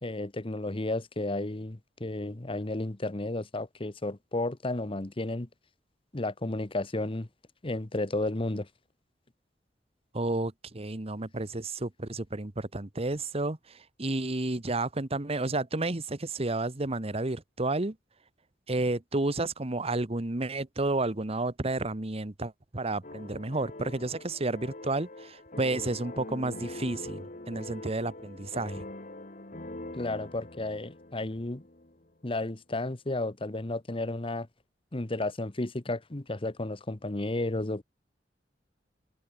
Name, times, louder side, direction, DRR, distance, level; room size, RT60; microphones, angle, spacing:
voice 1, 0.0-5.5 6.1-7.3 7.6-8.7 30.0-31.6 32.2-34.5 34.9-37.8, left 2 dB, 30° left, 1.1 m, -32 dB
voice 2, 10.1-18.0 18.7-28.9, right 2 dB, 35° right, 1.3 m, -31 dB
sound 1, 23.0-32.1, left 2 dB, 45° left, 2.4 m, -43 dB
head